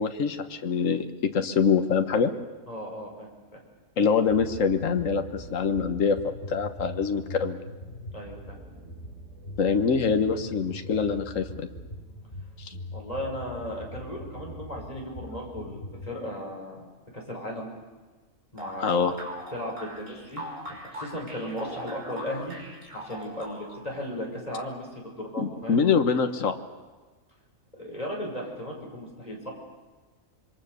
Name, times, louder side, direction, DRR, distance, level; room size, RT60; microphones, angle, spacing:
voice 1, 0.0-2.3 4.0-6.2 6.5-7.6 9.6-11.7 12.6-12.7 18.8-19.1 25.4-26.6, left 6 dB, 70° left, 7 dB, 1.6 m, -24 dB
voice 2, 2.7-3.6 8.1-8.6 12.9-16.9 17.1-17.7 18.5-19.1 19.5-20.4 20.7-22.5 22.9-25.8 27.7-29.5, left 1 dB, 30° left, -1 dB, 6.0 m, -36 dB
sound 1, 4.3-16.1, left 1 dB, 45° left, 3.1 m, -42 dB
sound 2, 18.6-23.9, right 1 dB, 70° right, 6.2 m, -40 dB
27.0 x 23.5 x 6.8 m, 1.3 s
omnidirectional pair, 1.4 m